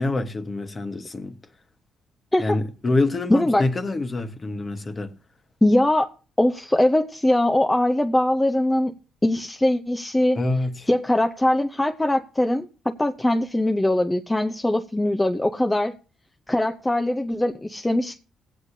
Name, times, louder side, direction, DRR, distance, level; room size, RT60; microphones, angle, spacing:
voice 1, 0.0-1.4 2.4-5.1 10.3-10.9, left 2 dB, 30° left, 1.2 m, -26 dB
voice 2, 3.3-3.6 5.6-6.1 6.4-8.9 9.2-10.4 10.9-15.9 16.5-18.2, left 1 dB, 10° left, 0.6 m, -21 dB
20.5 x 8.2 x 2.7 m
cardioid pair, 90°, 0 cm